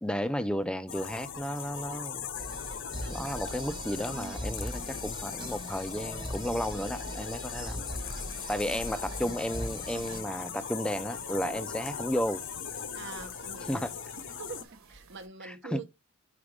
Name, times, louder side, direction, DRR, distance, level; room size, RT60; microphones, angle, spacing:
voice 1, 0.0-2.3 3.1-7.9 8.5-12.4 13.7-13.9 15.4-15.8, equal, 5° left, 0.4 m, -33 dB
sound 1, 0.9-14.6, left 7 dB, 60° left, 0.7 m, -39 dB
sound 2, 2.3-10.2, right 1 dB, 25° right, 1.1 m, -40 dB
sound 3, 6.7-15.3, right 3 dB, 85° right, 1.3 m, -55 dB
voice 2, 12.9-13.9 14.4-15.9, right 4 dB, 60° right, 0.9 m, -44 dB
5.1 x 4.9 x 4.7 m
head